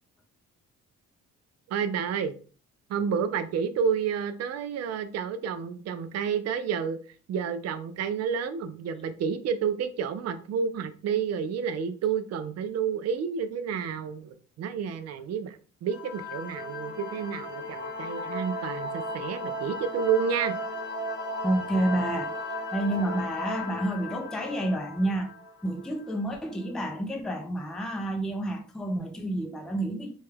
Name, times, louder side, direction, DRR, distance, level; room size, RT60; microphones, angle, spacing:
voice 1, 1.7-2.3 2.9-7.0 7.3-20.5, right 7 dB, 60° right, 0.5 m, -30 dB
sound 1, 15.9-26.3, left 1 dB, 90° left, 1.2 m, -36 dB
voice 2, 21.4-22.3 22.7-25.3 25.6-30.1, right 1 dB, ahead, 0.4 m, -29 dB
3.2 x 2.2 x 3.3 m
cardioid pair, 90°, 30 cm